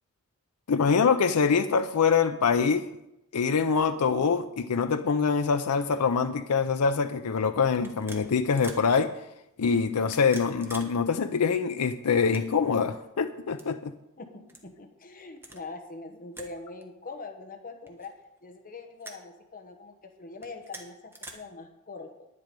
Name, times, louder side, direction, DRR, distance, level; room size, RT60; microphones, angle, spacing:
voice 1, 0.7-2.9 3.3-9.2 9.6-13.9, left 5 dB, 90° left, 0.5 m, -24 dB
sound 1, 6.7-6.9 7.8-8.9 10.0-10.9 11.2-11.3 12.1-12.8 13.5-13.7 14.5-14.7 15.4-15.6 16.3-16.5 16.8-16.9 17.9-18.4 19.0-19.2 20.3-21.3, right 2 dB, 10° right, 1.3 m, -45 dB
voice 2, 14.2-18.1 18.4-22.3, left 3 dB, 40° left, 1.1 m, -43 dB
10.5 x 10.5 x 5.2 m
head